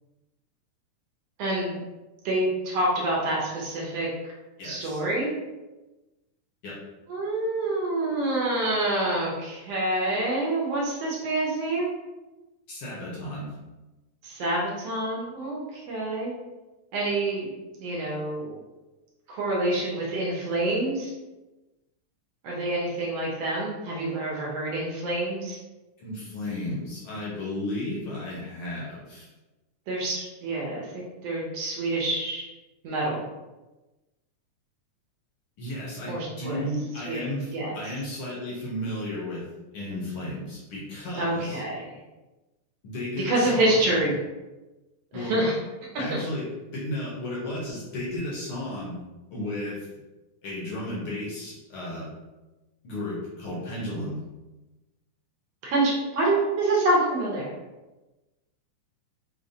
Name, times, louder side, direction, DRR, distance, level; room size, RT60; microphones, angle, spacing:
voice 1, 1.4-1.8 2.2-4.1 4.6-5.4 7.1-11.9 14.2-16.3 16.9-17.5 17.8-18.6 19.3-21.1 22.4-25.6 29.9-32.5 32.8-33.2 36.1-36.6 37.1-37.7 41.2-41.9 43.2-44.2 45.1-45.5 46.1-46.2 55.6-57.5, right 2 dB, 70° right, -3 dB, 1.6 m, -27 dB
voice 2, 4.6-5.0 6.6-6.7 12.7-13.5 26.0-29.3 35.6-39.4 39.7-41.6 42.8-44.0 45.1-45.4 46.0-46.4 46.7-49.0 49.3-49.9 50.4-52.1 52.8-54.2, left 1 dB, 65° left, -6 dB, 1.4 m, -34 dB
5.5 x 3.1 x 2.7 m, 1.1 s
omnidirectional pair, 3.7 m